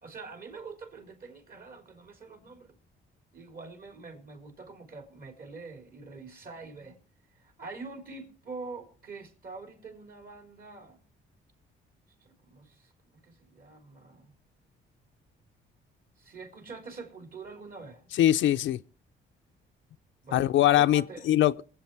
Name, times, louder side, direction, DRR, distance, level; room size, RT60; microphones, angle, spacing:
voice 1, 0.0-2.7 3.3-7.0 7.3-11.0 12.2-14.3 16.2-18.2 20.2-21.3, right 4 dB, 50° right, 3.9 m, -45 dB
voice 2, 18.2-18.8 20.3-21.6, left 13 dB, 75° left, 0.6 m, -22 dB
23.0 x 8.2 x 4.7 m
cardioid pair, 90°, 20 cm